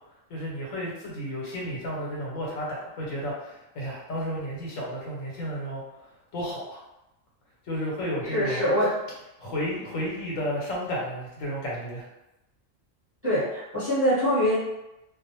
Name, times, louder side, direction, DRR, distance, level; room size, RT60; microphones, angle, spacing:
voice 1, 0.3-5.8 6.3-6.8 7.7-8.6 9.4-12.0, equal, 85° left, -4 dB, 1.2 m, -32 dB
voice 2, 8.2-8.9 13.2-14.5, equal, 10° right, -10 dB, 0.9 m, -24 dB
2.5 x 2.0 x 2.9 m, 0.91 s
omnidirectional pair, 1.4 m